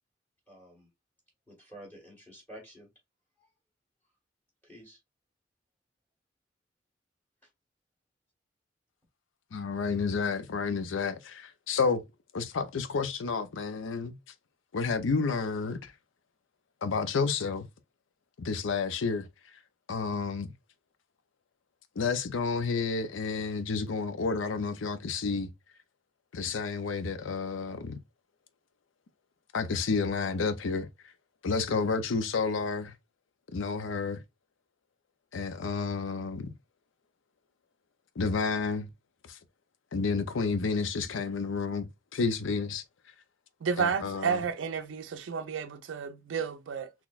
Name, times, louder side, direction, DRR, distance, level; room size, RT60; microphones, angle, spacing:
voice 1, 0.5-0.9 1.5-2.9 3.4-3.5 4.6-5.0, equal, 10° left, 1.6 m, -50 dB
voice 2, 9.5-12.0 12.3-14.2 14.7-15.9 16.8-17.7 18.4-19.3 19.9-20.5 22.0-25.5 26.3-28.0 29.5-30.9 31.4-32.9 33.5-34.2 35.3-36.5 38.2-38.9 39.3-39.4 39.9-42.8 43.8-44.4, left 4 dB, 80° left, 0.5 m, -30 dB
voice 3, 43.6-46.9, right 6 dB, 80° right, 0.4 m, -31 dB
4.0 x 2.9 x 2.3 m
head